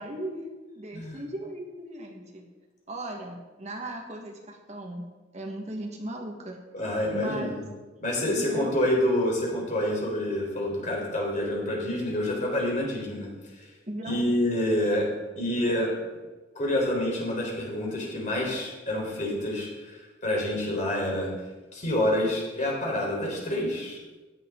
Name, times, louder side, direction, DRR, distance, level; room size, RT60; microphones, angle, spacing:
voice 1, 0.0-2.4 2.9-5.0 5.3-6.6 7.1-7.6 8.3-9.0 13.9-14.2, right 1 dB, 40° right, 1 dB, 1.6 m, -37 dB
voice 2, 0.9-1.2 6.7-7.6 8.0-13.7 14.0-15.1 15.4-15.9 16.5-21.3 21.7-24.0, left 1 dB, 45° left, -2 dB, 4.2 m, -27 dB
14.5 x 10.5 x 3.9 m, 1.2 s
head